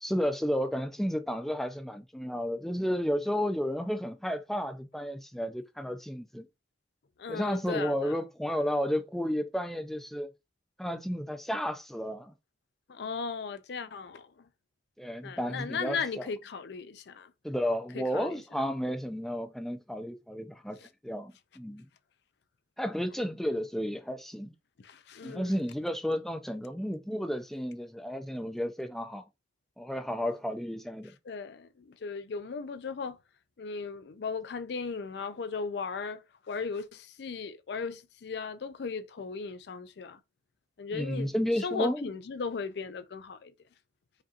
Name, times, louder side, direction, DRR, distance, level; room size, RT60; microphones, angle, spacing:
voice 1, 0.0-6.5 7.3-10.3 10.8-12.3 15.0-16.0 17.4-20.8 21.0-21.9 22.8-24.5 25.2-29.2 29.8-31.1 40.9-42.1, equal, ahead, 0.4 m, -32 dB
voice 2, 7.2-8.1 12.9-14.5 15.2-17.3 17.9-18.4 20.8-20.9 24.8-25.6 31.3-33.2 33.6-40.2 40.8-41.3 41.6-43.5, left 5 dB, 65° left, 0.4 m, -37 dB
5.1 x 2.7 x 2.4 m
head